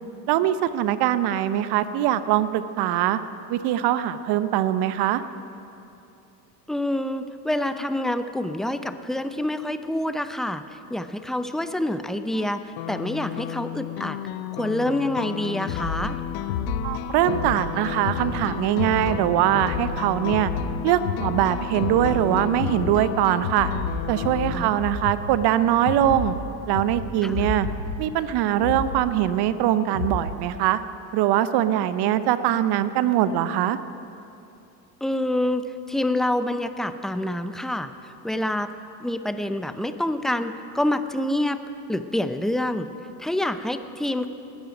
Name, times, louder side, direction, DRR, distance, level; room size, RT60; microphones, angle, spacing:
voice 1, 0.3-3.2 3.5-5.2 16.8-20.5 20.8-23.7 24.1-26.3 26.7-27.7 28.0-30.8 31.1-33.8, right 12 dB, 50° right, 13 dB, 0.8 m, -22 dB
voice 2, 6.7-14.2 14.5-16.2 24.5-24.8 27.2-27.5 35.0-38.7 39.0-42.9 43.2-44.3, left 1 dB, ahead, 10 dB, 0.6 m, -27 dB
sound 1, 12.3-24.6, left 13 dB, 50° left, 0.8 m, -33 dB
sound 2, 15.6-30.4, left 4 dB, 80° left, 1.3 m, -31 dB
19.5 x 10.5 x 5.2 m, 2.7 s
hypercardioid pair, 70°, 50 cm